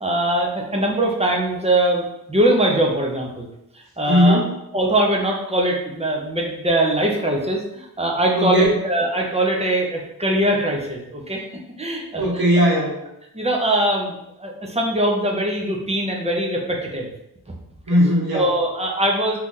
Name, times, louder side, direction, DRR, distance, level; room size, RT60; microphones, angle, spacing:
voice 1, 0.0-3.5 4.0-4.4 4.7-11.4 11.8-12.4 13.3-17.1 18.3-19.4, right 1 dB, 15° right, -1 dB, 0.7 m, -22 dB
voice 2, 4.1-4.5 8.3-8.8 12.2-13.0 17.9-18.5, equal, 65° right, -3 dB, 1.2 m, -18 dB
2.9 x 2.5 x 3.7 m, 0.83 s
cardioid pair, 70°, 40 cm